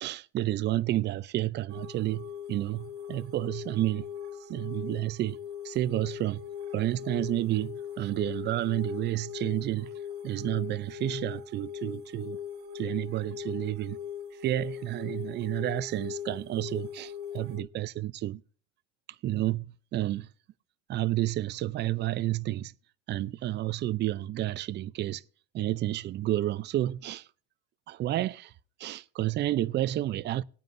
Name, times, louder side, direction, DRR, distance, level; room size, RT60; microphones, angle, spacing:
voice 1, 0.0-4.1 4.5-5.4 5.6-6.4 6.7-9.9 10.2-12.4 12.7-14.0 14.4-18.4 19.2-20.3 20.9-22.7 23.1-25.2 25.5-27.3 27.9-28.5 28.8-30.4, right 14 dB, 35° right, 0.6 m, -30 dB
sound 1, 1.7-17.6, left 8 dB, 70° right, 1.6 m, -40 dB
20.0 x 9.3 x 2.6 m
supercardioid pair, 110°, 29 cm